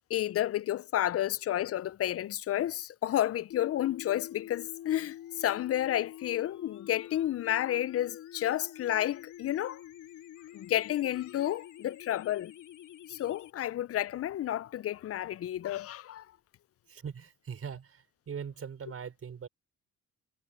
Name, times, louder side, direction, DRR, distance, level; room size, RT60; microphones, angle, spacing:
voice 1, 0.1-9.8 10.5-12.5 13.1-16.3, left 12 dB, 50° left, 0.5 m, -31 dB
sound 1, 3.5-13.5, left 12 dB, 75° left, 2.4 m, -47 dB
voice 2, 16.9-19.5, right 7 dB, 50° right, 5.1 m, -41 dB
cardioid pair, 90°, 30 cm